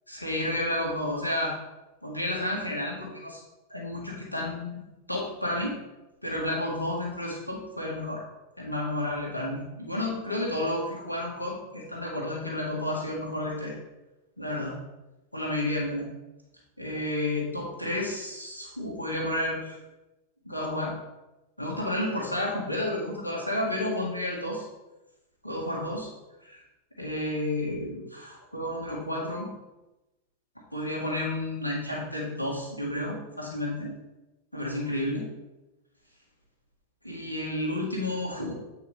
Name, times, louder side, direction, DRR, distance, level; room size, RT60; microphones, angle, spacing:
voice 1, 0.1-1.5 2.0-3.4 3.7-4.8 5.1-5.8 6.2-8.2 8.6-13.8 14.4-14.7 15.3-16.1 16.8-19.8 20.4-20.9 21.6-24.7 25.4-26.1 26.4-26.6 27.0-29.5 30.7-33.9 34.5-35.3 37.0-38.5, left 1 dB, 85° left, -4 dB, 1.8 m, -31 dB
8.6 x 4.9 x 3.2 m, 1.0 s
figure-of-eight pair, 90°, 0 cm